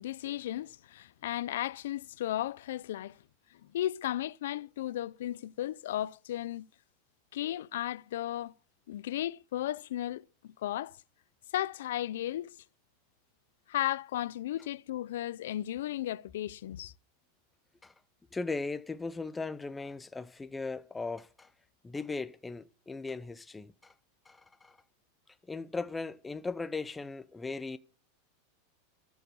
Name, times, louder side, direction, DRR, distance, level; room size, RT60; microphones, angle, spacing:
voice 1, 0.0-3.2 3.5-6.7 7.3-8.5 8.9-11.0 11.5-12.6 13.7-16.9, left 13 dB, 80° left, 0.5 m, -35 dB
voice 2, 18.3-21.5 21.8-23.9 24.3-24.8 25.5-27.8, left 3 dB, 10° left, 0.6 m, -38 dB
13.0 x 7.1 x 6.9 m
supercardioid pair, 150°, 0 cm